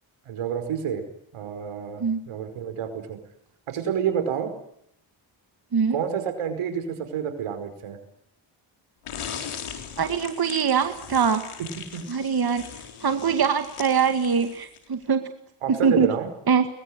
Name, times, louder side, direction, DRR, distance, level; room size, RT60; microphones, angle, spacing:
voice 1, 0.3-1.0 1.3-3.2 3.7-4.5 5.9-8.0 11.9-12.0 15.6-16.3, right 8 dB, 90° right, 7 dB, 5.2 m, -29 dB
sound 1, 9.1-14.9, left 8 dB, 80° left, 4.1 m, -39 dB
voice 2, 10.0-11.5 12.1-12.7 13.0-15.3 15.7-16.1 16.5-16.7, right 6 dB, 45° right, 7 dB, 2.1 m, -23 dB
23.0 x 20.5 x 9.9 m, 0.74 s
cardioid pair, 70°, 50 cm